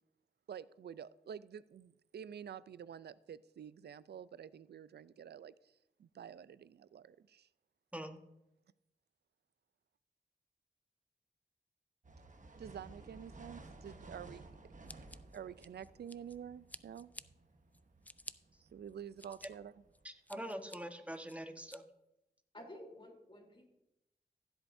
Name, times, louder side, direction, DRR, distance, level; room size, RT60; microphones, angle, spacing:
voice 1, 0.5-5.7 6.0-7.5 12.6-15.0 15.3-17.1 18.7-19.7, right 8 dB, 80° right, 0.4 m, -49 dB
sound 1, 12.0-20.0, right 2 dB, 50° right, 1.1 m, -56 dB
Scissors, 14.9-16.4 16.7-17.2 17.7-18.3 18.9-19.5 19.9-20.8 21.3-21.8, left 1 dB, 10° left, 0.4 m, -51 dB
voice 2, 20.0-21.8, equal, 10° right, 1.2 m, -44 dB
voice 3, 22.5-23.7, left 1 dB, 30° left, 3.3 m, -52 dB
15.0 x 8.0 x 2.6 m
cardioid pair, 50°, 17 cm